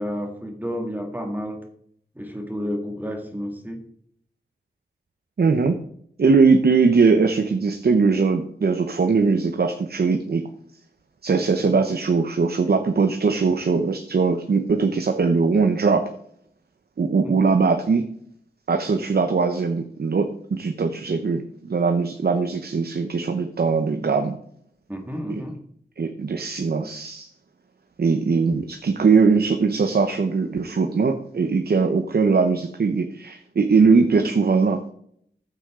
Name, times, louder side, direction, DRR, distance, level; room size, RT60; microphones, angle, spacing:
voice 1, 0.0-1.6 2.2-3.8 11.6-11.8 17.2-17.4 24.9-25.6, equal, 10° right, 3 dB, 2.1 m, -31 dB
voice 2, 5.4-5.8 6.2-10.5 11.2-16.1 17.0-18.0 18.7-24.4 25.3-25.4 26.0-27.3 28.0-34.8, right 4 dB, 65° right, 6 dB, 0.9 m, -20 dB
14.0 x 8.2 x 3.8 m, 0.66 s
wide cardioid pair, 95°, 18 cm